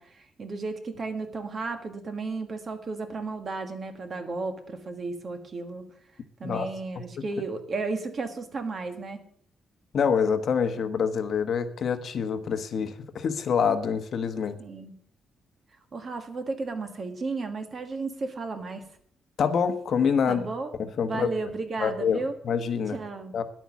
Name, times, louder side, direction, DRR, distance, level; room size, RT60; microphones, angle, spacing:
voice 1, 0.0-5.9 6.4-9.2 14.6-15.0 15.9-18.9 20.3-20.7 21.0-22.3 22.9-23.3, right 3 dB, 35° right, 7 dB, 1.5 m, -34 dB
voice 2, 9.9-14.6 19.4-20.4 20.8-21.3 21.8-23.0 23.3-23.4, left 6 dB, 50° left, 9 dB, 1.1 m, -26 dB
10.5 x 9.0 x 7.1 m, 0.62 s
cardioid pair, 160°, 0 cm